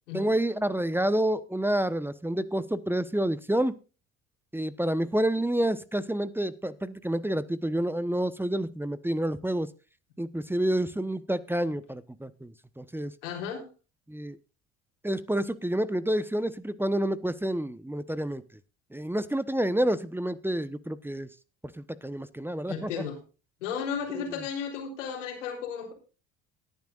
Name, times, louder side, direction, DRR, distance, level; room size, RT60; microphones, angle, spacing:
voice 1, 0.1-3.7 4.5-9.7 10.2-13.1 14.1-14.4 15.0-18.4 18.9-21.3 21.7-22.9 24.1-24.2, right 1 dB, 5° right, 15 dB, 1.0 m, -29 dB
voice 2, 13.2-13.7 22.7-23.2 23.6-25.9, left 7 dB, 85° left, 2 dB, 3.8 m, -34 dB
19.0 x 10.5 x 2.5 m, 0.33 s
hypercardioid pair, 60°, 36 cm